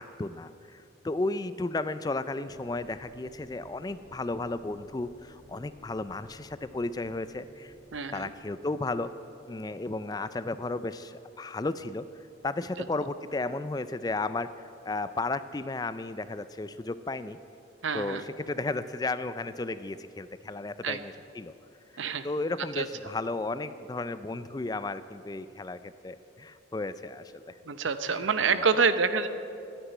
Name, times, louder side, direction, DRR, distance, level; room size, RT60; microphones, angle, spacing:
voice 1, 0.0-7.7 8.1-9.1 9.5-12.1 12.4-17.4 17.9-21.5 22.2-27.6 28.1-28.2 28.5-28.6, left 2 dB, 20° left, 13 dB, 0.3 m, -34 dB
sound 1, 1.5-10.1, equal, 10° right, 2.0 m, -58 dB
voice 2, 7.9-8.3 17.8-18.2 20.8-21.0 22.0-22.3 22.8-22.9 27.6-29.3, right 5 dB, 85° right, 12 dB, 0.7 m, -27 dB
11.0 x 9.7 x 9.8 m, 2.8 s
head